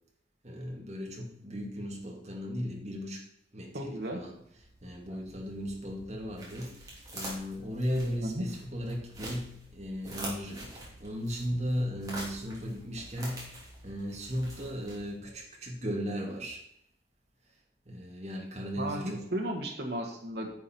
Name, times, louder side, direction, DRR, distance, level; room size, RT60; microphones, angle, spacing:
voice 1, 0.4-3.2 3.5-4.4 4.8-16.6 17.9-19.3, equal, 40° right, -1 dB, 2.0 m, -36 dB
voice 2, 3.7-4.2 8.2-8.4 18.8-20.5, right 1 dB, 65° right, 0 dB, 1.5 m, -34 dB
sound 1, 4.3-15.4, right 1 dB, 20° right, 2.8 m, -46 dB
10.0 x 6.9 x 4.4 m, 0.72 s
head